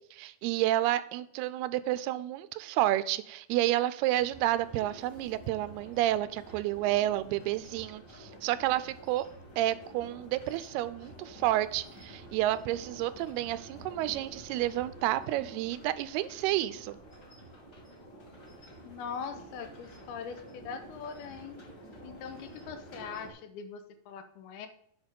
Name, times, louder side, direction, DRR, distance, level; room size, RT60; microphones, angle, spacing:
voice 1, 0.1-9.3 9.6-17.0, right 14 dB, 90° right, 15 dB, 2.6 m, -30 dB
sound 1, 4.1-23.3, right 1 dB, 30° left, 2.7 m, -50 dB
voice 2, 18.8-21.6 22.0-24.7, left 6 dB, 80° left, 9 dB, 2.8 m, -41 dB
8.8 x 5.1 x 5.3 m, 0.69 s
omnidirectional pair, 4.5 m